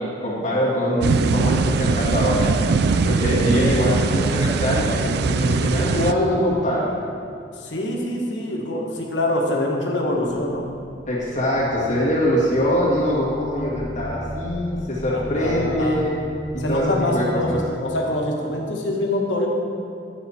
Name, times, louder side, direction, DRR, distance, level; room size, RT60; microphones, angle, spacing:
voice 1, 0.0-2.5 3.0-6.9 11.1-16.1 16.5-17.6, equal, 45° left, -6 dB, 2.0 m, -23 dB
sound 1, 1.0-6.1, right 4 dB, 60° right, 0.4 m, -21 dB
voice 2, 7.6-10.6 15.1-16.1 16.6-19.5, left 1 dB, 85° left, 0 dB, 1.4 m, -25 dB
sound 2, 10.1-17.6, left 1 dB, 10° left, 1.7 m, -35 dB
10.5 x 6.8 x 4.3 m, 2.5 s
head